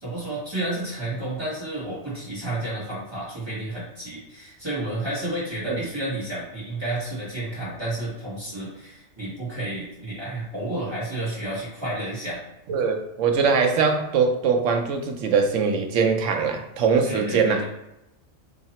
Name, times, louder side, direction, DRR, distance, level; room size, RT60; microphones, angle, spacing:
voice 1, 0.0-12.4 17.0-17.6, right 1 dB, 20° right, -7 dB, 1.4 m, -31 dB
voice 2, 12.7-17.6, right 5 dB, 75° right, 4 dB, 0.9 m, -22 dB
2.9 x 2.8 x 4.1 m, 0.91 s
omnidirectional pair, 1.3 m